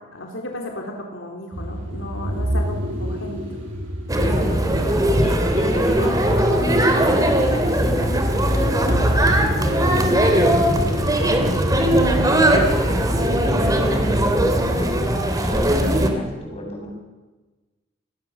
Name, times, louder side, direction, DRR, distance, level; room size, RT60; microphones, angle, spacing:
voice 1, 0.0-3.5 4.2-4.6, left 1 dB, 80° left, 2 dB, 3.5 m, -34 dB
sound 1, 1.5-13.7, equal, 75° right, 6.7 m, -29 dB
sound 2, 4.1-16.1, right 1 dB, 20° right, 3.1 m, -19 dB
voice 2, 5.2-14.9 15.4-16.9, left 1 dB, 30° left, 1 dB, 7.2 m, -33 dB
27.5 x 20.0 x 7.2 m, 1.2 s
head